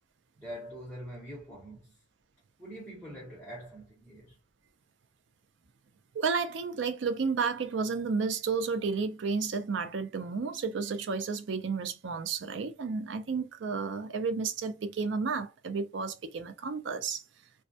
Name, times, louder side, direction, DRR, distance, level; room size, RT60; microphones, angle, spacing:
voice 1, 0.4-2.0 2.6-4.4, equal, 5° left, 0.8 m, -44 dB
voice 2, 6.1-17.2, right 5 dB, 65° right, 0.4 m, -32 dB
2.3 x 2.1 x 2.6 m
head